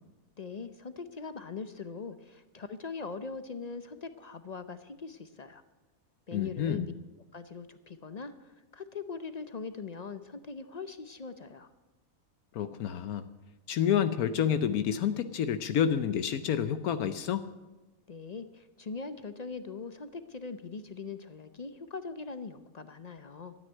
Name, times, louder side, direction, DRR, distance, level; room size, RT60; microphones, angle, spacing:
voice 1, 0.4-5.6 6.3-6.9 7.3-8.3 8.7-11.7 18.1-23.6, left 4 dB, 45° left, 11 dB, 0.5 m, -41 dB
voice 2, 6.3-7.0 12.5-13.3 13.7-17.4, left 8 dB, 80° left, 11 dB, 1.2 m, -29 dB
13.0 x 9.6 x 9.2 m, 1.1 s
omnidirectional pair, 1.5 m